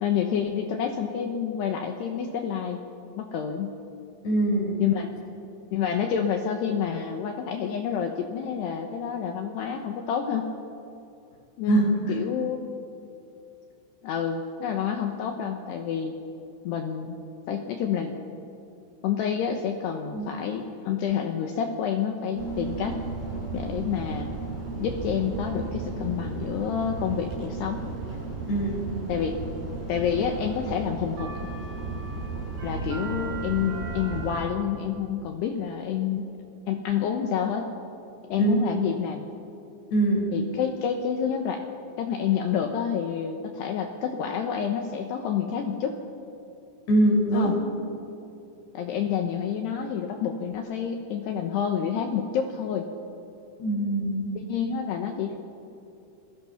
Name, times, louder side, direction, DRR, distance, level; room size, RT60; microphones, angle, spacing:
voice 1, 0.0-2.8 3.2-3.7 4.8-5.1 5.7-10.4 11.6-12.6 14.0-16.2 16.6-17.2 17.5-18.2 19.0-23.0 23.5-24.3 24.8-27.8 29.1-29.4 29.9-31.3 32.6-36.3 36.7-37.7 38.3-39.2 40.3-41.6 42.0-46.0 47.3-47.6 48.7-52.9 54.3-55.4, left 8 dB, 75° left, 4 dB, 2.6 m, -28 dB
voice 2, 4.2-4.8 11.7-11.8 20.1-20.3 28.5-28.8 38.4-38.6 39.9-40.3 46.9-47.5 53.6-54.4, right 2 dB, 55° left, -1 dB, 7.2 m, -23 dB
sound 1, 22.4-34.4, right 3 dB, 75° right, 10.0 m, -34 dB
29.0 x 21.5 x 5.8 m, 2.7 s
omnidirectional pair, 6.0 m